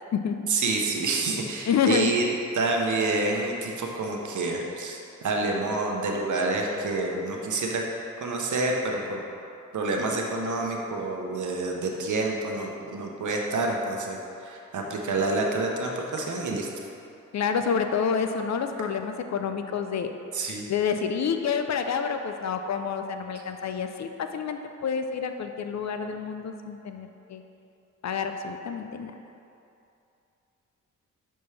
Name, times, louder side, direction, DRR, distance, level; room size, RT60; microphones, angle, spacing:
voice 1, 0.5-2.2 2.5-7.9 8.2-9.2 9.7-16.7 20.3-20.7, right 3 dB, 65° right, 0 dB, 0.9 m, -28 dB
voice 2, 1.7-2.1 17.3-20.1 20.7-27.4 28.0-29.1, left 6 dB, 55° left, 7 dB, 0.5 m, -28 dB
6.7 x 4.3 x 3.3 m, 2.7 s
cardioid pair, 55°, 32 cm